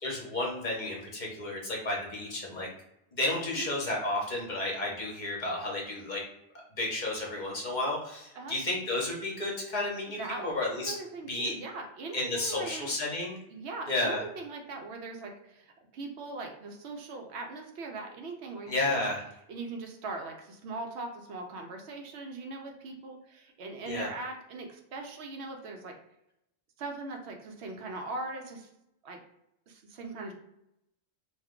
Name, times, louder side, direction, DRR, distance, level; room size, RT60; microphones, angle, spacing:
voice 1, 0.0-2.7 3.1-6.2 6.7-10.9 11.3-11.5 12.1-13.4 13.9-14.2 18.7-19.2 23.9-24.1, left 2 dB, 50° left, -2 dB, 0.9 m, -32 dB
voice 2, 10.2-10.5 10.8-12.9 13.5-19.1 19.5-25.9 26.8-28.7 29.0-29.2 29.7-30.3, right 3 dB, 80° right, 3 dB, 0.9 m, -40 dB
2.4 x 2.2 x 3.6 m, 0.83 s
omnidirectional pair, 1.1 m